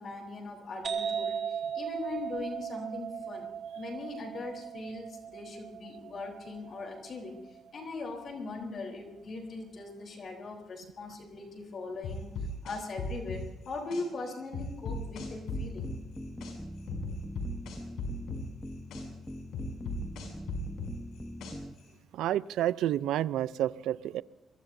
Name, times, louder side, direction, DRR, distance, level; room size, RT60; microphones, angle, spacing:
voice 1, 0.0-3.5 3.8-12.3 12.6-15.9, left 3 dB, 50° left, 1 dB, 3.7 m, -40 dB
sound 1, 0.8-8.3, right 7 dB, 50° right, 2.6 m, -38 dB
sound 2, 12.0-14.0 14.5-16.5 16.9-19.0 19.5-21.8, left 3 dB, 80° left, 6.3 m, -36 dB
sound 3, 14.9-21.7, equal, 5° left, 1.2 m, -42 dB
voice 2, 22.1-24.2, right 12 dB, 85° right, 18 dB, 0.5 m, -29 dB
23.0 x 23.0 x 2.7 m, 1.1 s
cardioid pair, 90°, 0 cm